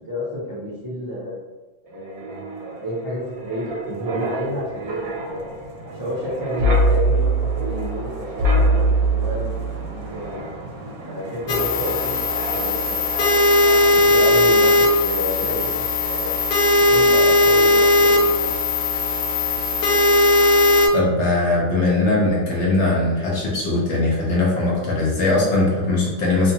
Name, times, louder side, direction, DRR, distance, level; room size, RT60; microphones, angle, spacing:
voice 1, 0.1-1.4 1.8-5.4 5.8-9.5 9.9-10.5 11.0-13.1 13.7-16.3 16.9-18.5, equal, 25° right, -9 dB, 0.4 m, -30 dB
Wind, 1.9-14.3 14.6-14.9, right 1 dB, 85° right, 1.0 m, -25 dB
sound 1, 11.5-20.9, left 2 dB, 85° left, 1.0 m, -18 dB
voice 2, 20.9-26.5, left 2 dB, 60° left, -4 dB, 0.9 m, -20 dB
2.5 x 2.2 x 2.7 m, 1.2 s
omnidirectional pair, 1.5 m